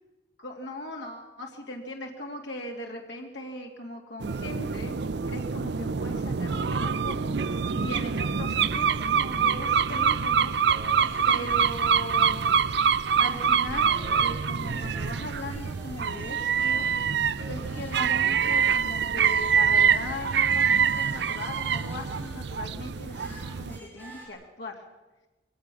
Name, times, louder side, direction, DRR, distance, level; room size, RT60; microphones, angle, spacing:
voice 1, 0.4-4.9 5.2-7.4 7.8-10.6 11.3-12.5 13.2-17.0 17.3-24.8, left 1 dB, 75° left, 1 dB, 2.7 m, -39 dB
sound 1, 4.2-23.8, right 6 dB, 70° right, 0.5 m, -25 dB
sound 2, 7.3-9.2 9.5-12.7 13.4-13.5 14.0-19.4, right 1 dB, 85° right, 5.4 m, -46 dB
sound 3, 11.0-24.3, equal, 10° left, 6.0 m, -49 dB
22.5 x 18.0 x 6.3 m, 1.1 s
head